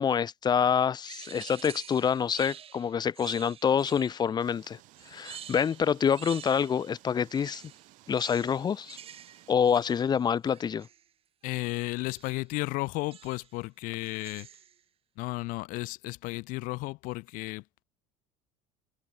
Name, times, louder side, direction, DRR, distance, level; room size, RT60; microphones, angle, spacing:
voice 1, 0.0-4.8 5.1-7.6 8.1-9.0 9.5-10.9, left 7 dB, 30° left, 0.8 m, -27 dB
sound 1, 1.0-4.4 4.9-6.9 7.2-11.1 12.1-12.5 13.1-13.6 14.0-14.8, right 9 dB, 40° right, 5.8 m, -48 dB
sound 2, 4.4-9.6, right 19 dB, 65° right, 3.9 m, -57 dB
voice 2, 11.4-14.5 15.2-17.8, left 22 dB, 70° left, 2.1 m, -34 dB
supercardioid pair, 105°, 14 cm